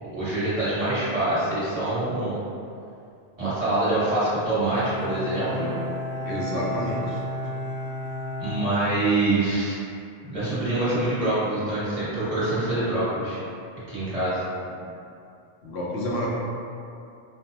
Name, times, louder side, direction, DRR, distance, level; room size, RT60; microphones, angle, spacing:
voice 1, 0.0-2.4 3.4-5.7 8.4-9.7 10.2-13.4 13.9-14.4, right 2 dB, 35° right, -12 dB, 1.3 m, -25 dB
Bowed string instrument, 4.6-9.5, left 1 dB, 40° left, 0.6 m, -33 dB
voice 2, 6.2-7.2 14.7-14.8 15.6-16.3, equal, 75° left, -5 dB, 0.9 m, -29 dB
5.0 x 2.0 x 2.9 m, 2.5 s
omnidirectional pair, 1.1 m